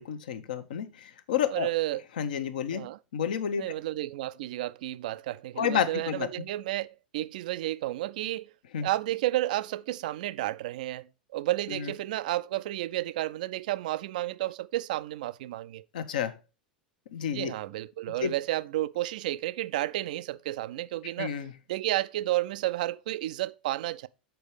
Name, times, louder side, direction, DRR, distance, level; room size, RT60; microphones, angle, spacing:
voice 1, 0.0-1.7 2.2-2.8 3.1-3.6 5.6-6.3 8.7-8.9 11.7-11.9 15.9-16.3 17.1-17.5 18.2-18.3 21.2-21.5, left 8 dB, 70° left, 0.9 m, -30 dB
voice 2, 1.5-2.0 2.7-3.0 3.6-6.9 7.1-8.5 8.8-15.8 17.3-21.3 21.7-24.1, right 15 dB, 65° right, 0.4 m, -31 dB
6.7 x 4.6 x 4.7 m
figure-of-eight pair, 85°, 5 cm